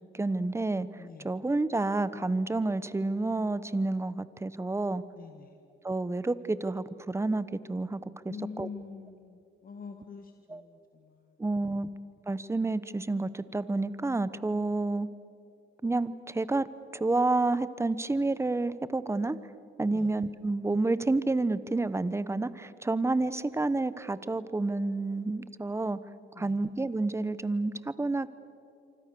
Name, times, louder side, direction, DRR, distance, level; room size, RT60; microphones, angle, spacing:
voice 1, 0.1-5.0 5.8-8.0 8.6-8.7 10.5-10.6 11.4-11.9 12.3-15.1 15.8-16.7 16.9-19.4 19.8-26.0 26.4-28.3, right 2 dB, 15° right, 15 dB, 1.0 m, -29 dB
voice 2, 1.0-1.3 5.1-5.6 8.3-11.6 19.9-20.2 26.3-26.6, left 5 dB, 45° left, 4 dB, 1.9 m, -46 dB
27.0 x 25.0 x 6.9 m, 2.6 s
cardioid pair, 90°, 20 cm